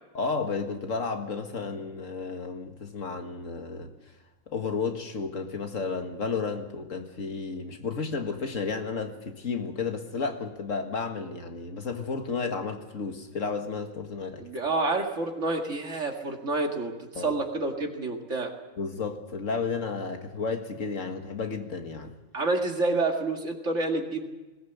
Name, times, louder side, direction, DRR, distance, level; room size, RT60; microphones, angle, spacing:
voice 1, 0.1-3.9 4.5-14.5 17.2-17.3 18.8-22.1, left 4 dB, 70° left, 2.0 m, -32 dB
voice 2, 14.4-18.6 22.3-24.2, right 2 dB, 60° right, 2.5 m, -28 dB
20.5 x 18.0 x 8.1 m
omnidirectional pair, 1.4 m